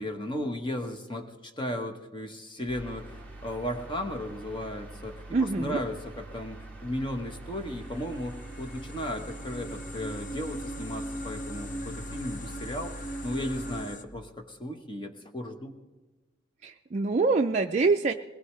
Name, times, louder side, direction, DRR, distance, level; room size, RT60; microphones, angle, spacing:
voice 1, 0.0-15.8, left 1 dB, 25° left, 5 dB, 1.1 m, -35 dB
sound 1, 2.7-13.8, right 2 dB, 5° left, 2.5 m, -44 dB
voice 2, 5.3-5.8 16.6-18.1, right 3 dB, 35° right, 2 dB, 0.4 m, -25 dB
sound 2, 7.4-14.0, equal, 45° left, 0.7 m, -40 dB
21.0 x 19.5 x 3.2 m, 1.2 s
head